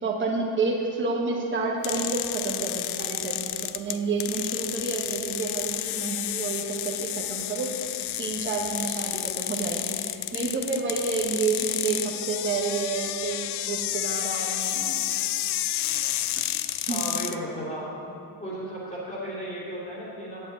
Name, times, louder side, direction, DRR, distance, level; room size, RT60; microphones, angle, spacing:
voice 1, 0.0-7.7 8.2-15.0 16.9-17.1, right 4 dB, 25° right, -1 dB, 1.2 m, -29 dB
sound 1, 1.8-17.4, left 13 dB, 55° left, 0.5 m, -30 dB
voice 2, 16.9-17.9 18.4-20.4, equal, 15° left, -7 dB, 2.9 m, -34 dB
9.9 x 8.0 x 7.9 m, 2.5 s
cardioid pair, 180°, 47 cm